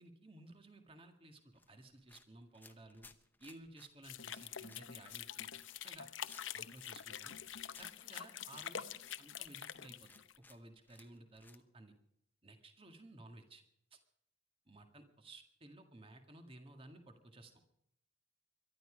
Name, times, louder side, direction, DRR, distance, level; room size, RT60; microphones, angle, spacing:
voice 1, 0.0-1.4 1.7-3.1 3.4-5.5 5.8-6.1 6.5-7.4 7.8-10.1 10.5-11.9 12.4-13.6 13.9-14.0 14.7-17.5, right 2 dB, 30° right, 5 dB, 1.9 m, -56 dB
sound 1, 1.5-11.6, left 3 dB, 10° left, 0.8 m, -63 dB
sound 2, 4.0-10.4, left 9 dB, 75° left, 0.8 m, -46 dB
22.5 x 12.0 x 5.1 m, 0.75 s
head